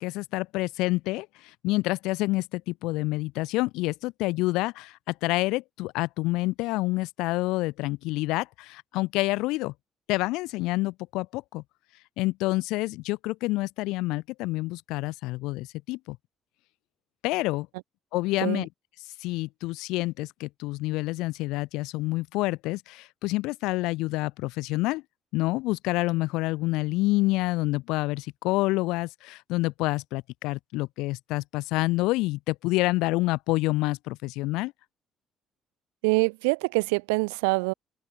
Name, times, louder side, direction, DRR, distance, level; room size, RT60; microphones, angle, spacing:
voice 1, 0.0-9.7 10.1-11.6 12.2-16.2 17.2-17.7 18.1-18.7 19.2-25.0 25.3-34.7, left 21 dB, 70° left, 0.9 m, -28 dB
voice 2, 36.0-37.7, right 30 dB, 75° right, 0.9 m, -25 dB
open air
hypercardioid pair, 50°, 0 cm